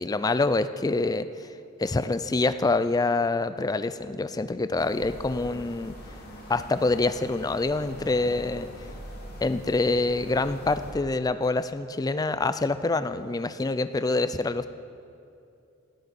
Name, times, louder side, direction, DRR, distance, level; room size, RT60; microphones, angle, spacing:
voice 1, 0.0-1.5 1.8-5.9 6.5-8.7 9.4-14.7, left 3 dB, 20° left, 13 dB, 0.3 m, -26 dB
sound 1, 4.8-10.9, equal, 50° left, 2.3 m, -43 dB
17.5 x 12.0 x 4.2 m, 2.6 s
head